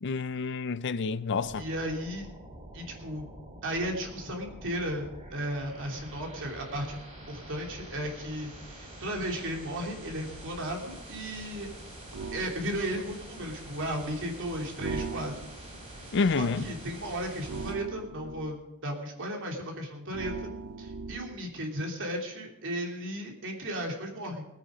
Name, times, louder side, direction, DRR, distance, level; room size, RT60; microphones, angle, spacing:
voice 1, 0.0-1.6 16.1-16.7, left 4 dB, 55° left, 0.5 m, -28 dB
sound 1, 1.4-17.7, right 1 dB, 30° right, 4.0 m, -46 dB
voice 2, 1.6-2.3 2.7-3.3 3.6-11.7 12.3-15.3 15.9-16.0 16.3-20.5 20.8-24.5, equal, 60° right, 3.1 m, -35 dB
sound 2, 12.1-12.6 14.8-15.7 17.5-18.6 20.1-21.5, right 4 dB, 85° right, 0.7 m, -38 dB
20.0 x 9.3 x 5.1 m
head